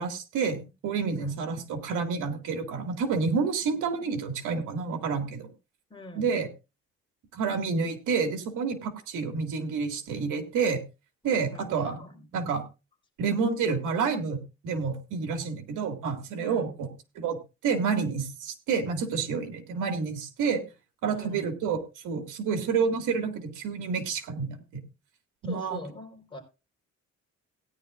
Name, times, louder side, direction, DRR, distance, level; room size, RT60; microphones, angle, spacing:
voice 1, 0.0-5.5 6.2-6.5 7.3-10.8 11.2-12.0 12.3-12.6 13.2-16.9 17.2-17.4 17.6-20.6 21.0-21.8 22.0-24.8 25.4-25.8, right 5 dB, 85° right, 6 dB, 2.1 m, -29 dB
voice 2, 5.9-6.3 11.2-12.3 16.4-16.7 21.1-21.5 25.4-26.4, left 1 dB, 15° left, 0 dB, 4.4 m, -43 dB
17.5 x 10.0 x 2.5 m, 0.28 s
cardioid pair, 90°, 30 cm